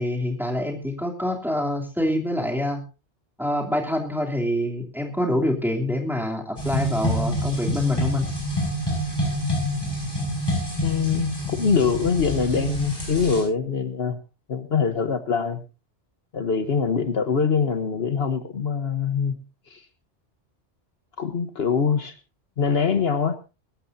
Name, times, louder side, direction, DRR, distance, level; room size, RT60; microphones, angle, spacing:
voice 1, 0.0-2.8 3.4-8.2, left 1 dB, ahead, 3.0 m, -26 dB
sound 1, 6.6-13.4, equal, 20° left, 6.4 m, -27 dB
voice 2, 10.8-14.2 14.5-15.6 16.3-19.4 19.7-19.9 21.2-22.2 22.6-23.4, left 6 dB, 65° left, 1.3 m, -23 dB
22.0 x 13.0 x 2.7 m
omnidirectional pair, 1.1 m